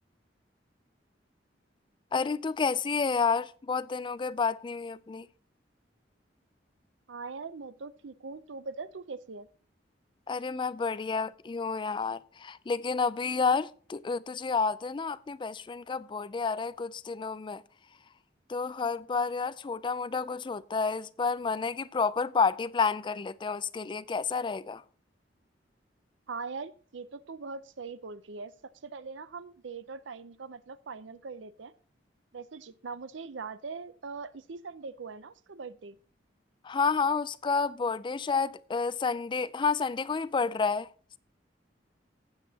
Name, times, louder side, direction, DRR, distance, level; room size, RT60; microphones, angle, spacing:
voice 1, 2.1-5.3 10.3-17.6 18.5-24.8 36.6-40.9, left 5 dB, 25° left, 0.4 m, -30 dB
voice 2, 7.1-9.5 26.3-28.5 28.8-31.7 32.3-36.0, right 4 dB, 90° right, 0.6 m, -41 dB
15.0 x 8.2 x 2.8 m
head